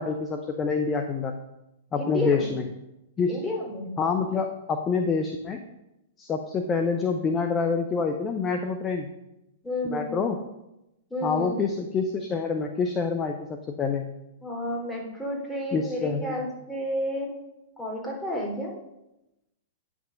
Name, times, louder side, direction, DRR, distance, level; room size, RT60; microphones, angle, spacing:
voice 1, 0.0-1.4 1.9-2.6 3.2-3.4 4.0-5.6 6.2-9.1 9.8-10.4 11.2-14.1 15.7-16.4, left 5 dB, 25° left, 5 dB, 0.8 m, -27 dB
voice 2, 2.0-2.4 3.3-3.9 9.6-10.3 11.1-11.6 14.4-17.4 17.8-18.7, left 1 dB, 5° left, -3 dB, 3.4 m, -31 dB
9.3 x 6.2 x 5.3 m, 0.92 s
figure-of-eight pair, 110°, 0 cm